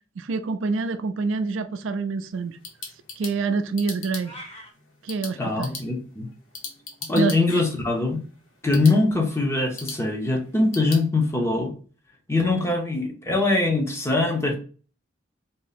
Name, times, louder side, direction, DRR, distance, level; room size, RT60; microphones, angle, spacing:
voice 1, 0.2-2.6 3.2-4.3 5.0-5.8 7.1-7.3, right 4 dB, 75° right, 0.4 m, -26 dB
sound 1, 2.3-11.1, left 4 dB, 90° left, 1.0 m, -41 dB
sound 2, 4.2-4.7, equal, 30° left, 1.1 m, -41 dB
voice 2, 5.4-6.3 7.1-8.2 8.6-11.7 12.3-14.6, left 2 dB, 15° left, 0.7 m, -22 dB
3.0 x 2.7 x 4.0 m
head